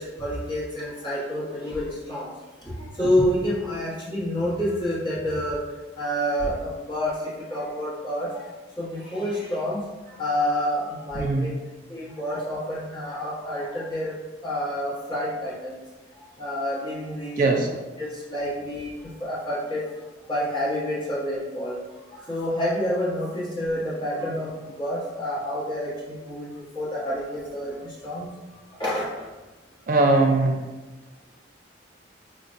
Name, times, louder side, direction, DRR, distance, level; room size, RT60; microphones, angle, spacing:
voice 1, 0.0-2.3 2.7-5.6 6.0-7.2 7.5-8.3 8.8-9.8 10.2-11.5 11.9-14.1 14.4-15.7 16.4-17.6 18.0-18.9 19.2-19.8 20.3-21.8 22.3-27.7 28.0-28.3 28.8-29.3, equal, 25° left, -8 dB, 1.2 m, -28 dB
voice 2, 11.1-11.5 17.4-17.7 29.9-30.7, right 2 dB, 45° right, 1 dB, 0.3 m, -20 dB
5.6 x 2.2 x 2.5 m, 1.2 s
head